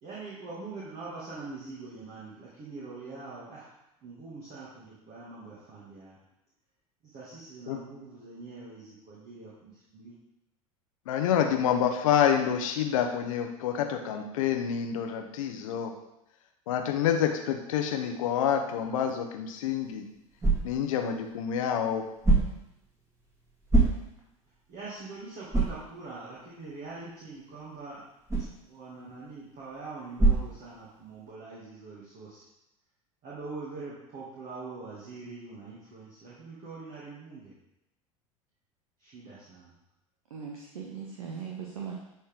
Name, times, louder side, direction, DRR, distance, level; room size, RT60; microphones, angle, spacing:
voice 1, 0.0-3.7 4.0-6.2 7.0-10.2 24.7-28.1 28.4-32.4 33.2-37.5 39.0-39.7, right 3 dB, 45° right, -7 dB, 2.2 m, -43 dB
voice 2, 11.1-15.9 16.7-20.0 20.6-22.0, left 8 dB, 65° left, 5 dB, 0.9 m, -27 dB
sound 1, 19.5-31.3, right 3 dB, 15° right, 2.3 m, -30 dB
voice 3, 40.3-41.9, right 6 dB, 75° right, -1 dB, 1.0 m, -39 dB
10.5 x 4.4 x 3.6 m, 0.89 s
figure-of-eight pair, 75°, 18 cm